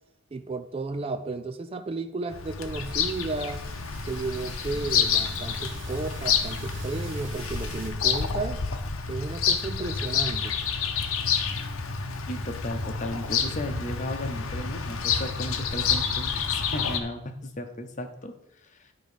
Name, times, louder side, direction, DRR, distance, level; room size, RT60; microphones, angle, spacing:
voice 1, 0.3-3.6 4.1-8.6 9.1-10.6, right 3 dB, 25° right, 9 dB, 0.3 m, -33 dB
Bird vocalization bird call bird song, 2.3-17.0, left 6 dB, 75° left, 0.8 m, -29 dB
sound 1, 2.7-7.9, right 2 dB, 60° right, 1.1 m, -43 dB
voice 2, 12.3-18.3, left 1 dB, 35° left, 7 dB, 0.8 m, -35 dB
11.0 x 3.8 x 5.1 m, 0.83 s
head